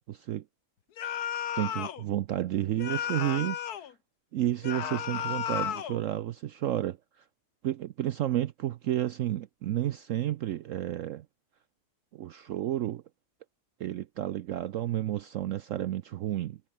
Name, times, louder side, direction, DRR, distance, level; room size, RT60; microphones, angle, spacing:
voice 1, 0.1-0.4 1.5-3.9 4.3-7.2 7.6-11.3 12.1-13.0 13.8-16.6, right 13 dB, 70° right, 0.8 m, -31 dB
sound 1, 1.0-2.0 2.8-3.9 4.6-6.0, left 9 dB, 70° left, 1.6 m, -33 dB
omnidirectional pair, 1.8 m